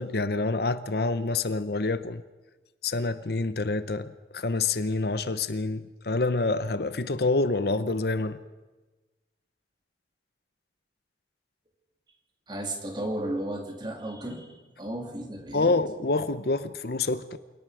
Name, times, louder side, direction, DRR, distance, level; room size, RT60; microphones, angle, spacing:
voice 1, 0.0-2.2 2.8-8.4 15.5-17.4, left 3 dB, 60° left, 0.8 m, -27 dB
voice 2, 12.5-15.7, right 1 dB, 25° right, 2.7 m, -34 dB
28.0 x 18.5 x 5.0 m
head